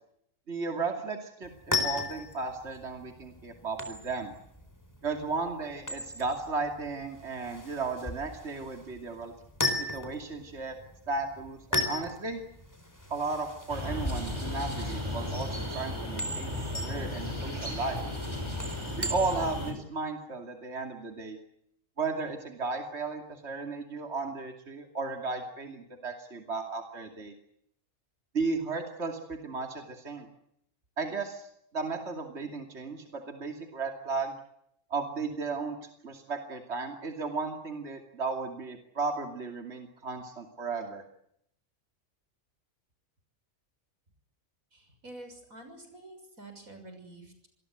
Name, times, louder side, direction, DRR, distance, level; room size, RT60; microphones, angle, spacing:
voice 1, 0.5-4.3 5.0-9.3 9.8-10.8 11.1-12.4 13.1-18.0 19.0-21.4 22.0-27.3 28.3-30.3 31.0-31.5 31.7-34.3 34.9-35.8 36.0-41.0, right 3 dB, 55° right, 4 dB, 3.0 m, -35 dB
sound 1, 1.4-19.7, left 2 dB, 15° left, 4.2 m, -37 dB
sound 2, 13.7-19.7, left 1 dB, 20° right, 6.0 m, -35 dB
voice 2, 44.7-47.5, right 2 dB, 90° right, 7 dB, 7.1 m, -48 dB
27.0 x 20.5 x 8.1 m, 0.74 s
omnidirectional pair, 1.4 m